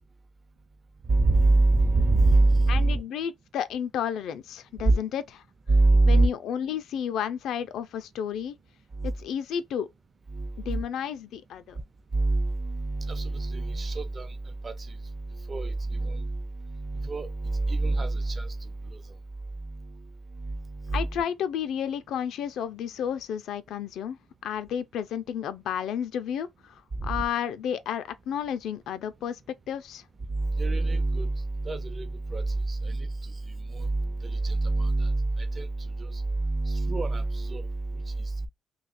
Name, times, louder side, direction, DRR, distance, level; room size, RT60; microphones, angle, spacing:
voice 1, 1.1-3.0 4.8-5.0 5.7-6.3 9.0-9.1 10.3-10.8 12.1-19.0 19.6-20.1 20.3-21.2 27.0-27.2 30.3-33.3 33.7-38.5, right 2 dB, 35° right, 0.7 m, -25 dB
voice 2, 2.7-5.4 6.0-8.6 9.0-9.9 10.7-11.8 20.9-24.2 24.4-29.4 29.7-30.0, left 9 dB, 80° left, 0.4 m, -32 dB
2.7 x 2.3 x 4.1 m
cardioid pair, 90°, 0 cm